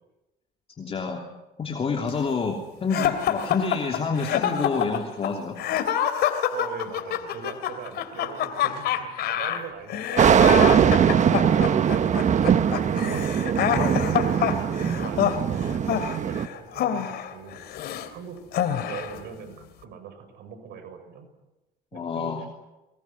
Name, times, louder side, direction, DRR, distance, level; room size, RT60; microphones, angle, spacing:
voice 1, 0.8-1.2 1.6-5.6 21.9-22.4, left 4 dB, 35° left, 2 dB, 3.1 m, -28 dB
sound 1, 2.9-18.1 18.5-19.2, left 10 dB, 70° left, 2.8 m, -27 dB
voice 2, 6.5-11.5 12.2-12.6 13.1-21.3 21.9-22.5, right 6 dB, 75° right, 7 dB, 6.7 m, -41 dB
sound 2, 10.2-16.5, right 8 dB, 45° right, 1.2 m, -21 dB
23.5 x 21.5 x 9.6 m, 1.0 s
cardioid pair, 110°, 17 cm